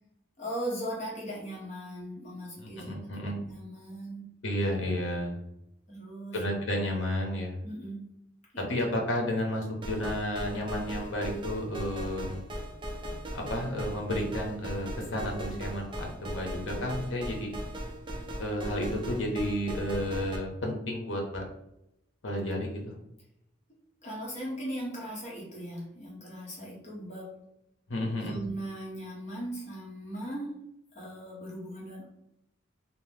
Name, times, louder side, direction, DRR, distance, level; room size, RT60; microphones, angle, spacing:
voice 1, 0.4-4.3 5.9-6.4 7.6-8.1 8.5-8.8 24.0-27.4 28.2-30.6 30.9-32.0, right 1 dB, 40° left, -4 dB, 1.0 m, -38 dB
voice 2, 2.6-3.4 4.4-5.4 6.3-7.5 8.7-12.4 13.3-17.5 18.4-21.4 22.2-22.9 27.9-28.4, left 1 dB, 80° left, 0 dB, 0.8 m, -32 dB
sound 1, 9.8-20.4, right 1 dB, 25° right, 0.4 m, -38 dB
2.8 x 2.0 x 3.2 m, 0.82 s
head